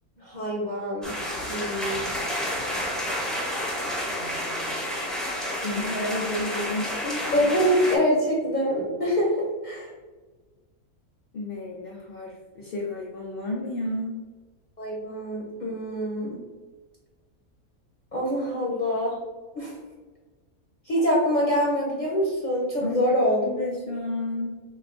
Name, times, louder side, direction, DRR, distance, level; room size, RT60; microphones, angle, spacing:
voice 1, 0.2-1.1 1.5-2.1 7.3-9.9 14.8-16.4 18.1-19.2 19.5-19.7 20.9-23.5, equal, 40° left, -4 dB, 0.7 m, -25 dB
sound 1, 1.0-8.0, equal, ahead, 0.5 m, -30 dB
voice 2, 4.0-4.9 5.6-7.4 11.3-14.2 22.8-23.1 23.4-24.5, left 2 dB, 85° left, -2 dB, 0.5 m, -32 dB
6.1 x 2.3 x 2.5 m, 1.3 s
omnidirectional pair, 1.5 m